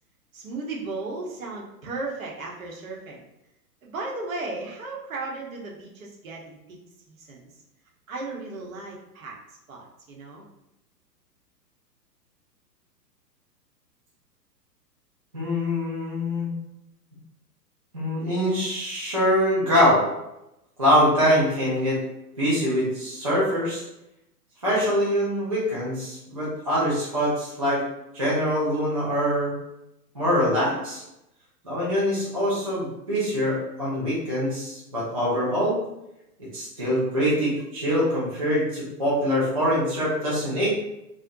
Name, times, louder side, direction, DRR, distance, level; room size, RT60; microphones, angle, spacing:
voice 1, 0.3-3.2 3.8-6.8 7.1-7.5 8.1-9.3 9.7-10.4, right 3 dB, 55° right, -2 dB, 0.8 m, -35 dB
voice 2, 15.3-16.5 17.9-20.0 20.8-22.0 22.4-23.8 24.6-27.8 28.1-29.5 30.1-31.0 31.6-35.8 36.5-40.7, equal, 25° right, -9 dB, 0.3 m, -24 dB
2.5 x 2.1 x 2.5 m, 0.87 s
figure-of-eight pair, 115°, 50 cm